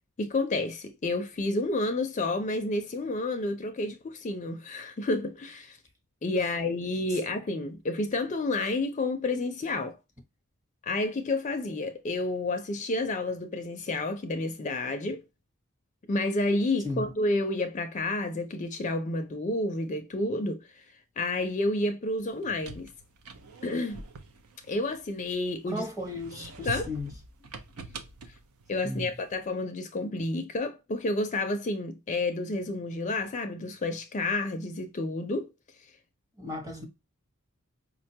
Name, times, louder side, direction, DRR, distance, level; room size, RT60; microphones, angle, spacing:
voice 1, 0.2-5.8 6.2-10.0 10.8-15.2 16.1-20.9 21.2-22.9 23.6-24.0 24.7-25.9 26.3-26.9 28.3-28.4 28.7-35.5, left 2 dB, 35° left, 0.4 m, -30 dB
sound 1, 22.2-25.5 26.0-29.4, right 4 dB, 80° right, 0.6 m, -44 dB
voice 2, 25.7-27.1 28.8-29.1 36.4-36.9, left 2 dB, 15° right, 0.8 m, -35 dB
5.0 x 2.2 x 2.6 m
head